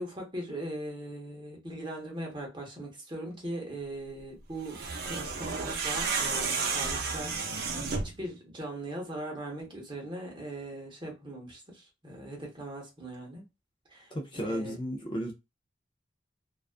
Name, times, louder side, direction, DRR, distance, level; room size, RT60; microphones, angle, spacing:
voice 1, 0.0-7.7 8.0-13.4 13.9-14.8, right 1 dB, 25° right, 0.9 m, -40 dB
sound 1, 4.6-8.2, right 4 dB, 60° right, 0.6 m, -32 dB
voice 2, 14.1-15.3, equal, 25° left, 0.5 m, -33 dB
2.3 x 2.3 x 2.4 m
head